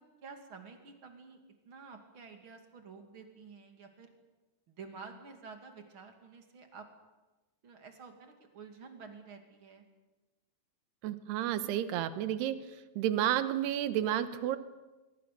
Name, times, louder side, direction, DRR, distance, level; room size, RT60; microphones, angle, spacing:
voice 1, 0.0-1.4 1.6-4.1 4.7-6.8 7.6-9.8, right 5 dB, 35° right, 5 dB, 2.7 m, -50 dB
voice 2, 11.0-12.6 13.0-14.6, right 11 dB, 75° right, 12 dB, 3.1 m, -31 dB
24.5 x 24.5 x 6.8 m, 1.1 s
omnidirectional pair, 4.9 m